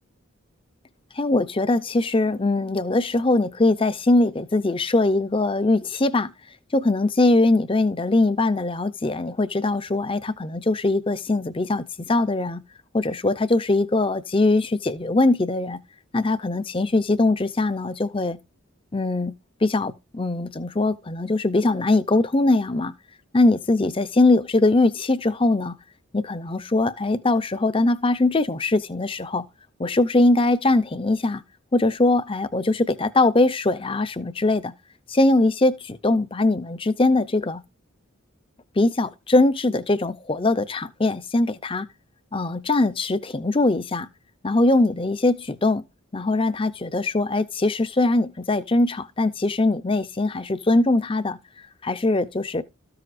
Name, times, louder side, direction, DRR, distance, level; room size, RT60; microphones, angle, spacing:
voice 1, 1.1-6.3 6.7-12.6 12.9-15.8 16.1-18.4 18.9-19.3 19.6-22.9 23.3-25.8 26.1-29.4 29.8-31.4 31.7-34.7 35.1-37.6 38.8-41.9 42.3-44.1 44.4-45.8 46.1-51.4 51.8-52.6, left 2 dB, 25° left, 0.6 m, -21 dB
13.5 x 7.7 x 2.5 m
head